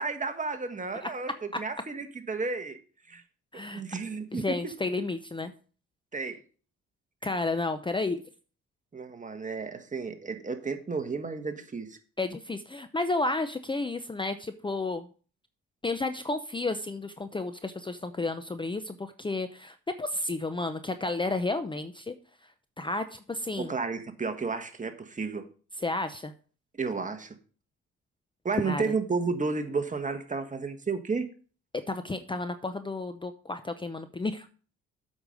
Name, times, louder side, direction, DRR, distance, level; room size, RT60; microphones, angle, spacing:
voice 1, 0.0-2.8 3.1-3.2 3.7-4.4 6.1-6.4 8.9-12.0 23.6-25.5 26.8-27.4 28.4-31.2, right 4 dB, 25° right, 1.4 m, -32 dB
voice 2, 4.3-5.5 7.2-8.2 12.2-15.1 15.8-22.1 22.8-23.7 25.8-26.3 28.6-28.8 31.9-34.5, left 2 dB, 15° left, 0.7 m, -32 dB
8.0 x 5.4 x 6.4 m
cardioid pair, 90°, 30 cm